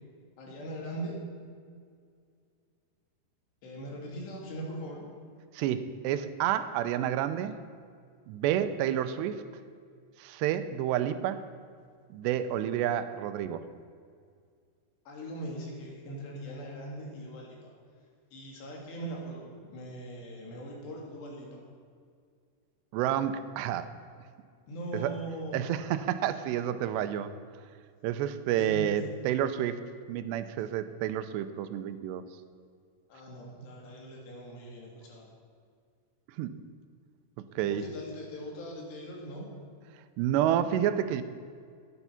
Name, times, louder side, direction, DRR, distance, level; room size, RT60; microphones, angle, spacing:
voice 1, 0.4-1.2 3.6-5.0 15.1-17.6 18.3-21.6 24.7-25.7 28.6-29.0 33.1-35.3 37.7-39.5, right 1 dB, 80° left, -2 dB, 4.6 m, -40 dB
voice 2, 5.5-7.6 8.3-9.4 10.2-11.4 12.1-13.7 22.9-23.9 24.9-25.1 25.5-27.3 28.0-29.8 30.1-32.2 36.4-36.6 37.6-37.9 40.2-41.2, right 10 dB, 90° right, 11 dB, 2.8 m, -29 dB
12.5 x 11.0 x 5.7 m, 2.2 s
omnidirectional pair, 4.9 m